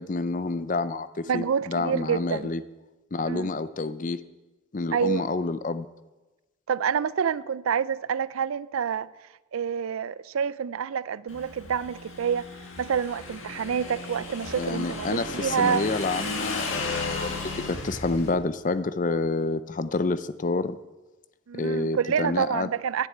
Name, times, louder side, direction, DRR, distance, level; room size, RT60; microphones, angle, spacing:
voice 1, 0.0-2.6 3.1-4.2 4.7-5.9 14.6-20.8 21.5-22.7, left 3 dB, 40° left, 0.5 m, -28 dB
voice 2, 1.3-2.5 3.3-3.5 4.9-5.2 6.7-9.1 9.5-12.5 12.8-15.8 21.5-23.1, right 7 dB, 85° right, 0.4 m, -27 dB
Motorcycle / Engine, 11.3-18.3, left 3 dB, 75° left, 1.8 m, -35 dB
11.0 x 6.6 x 8.7 m
head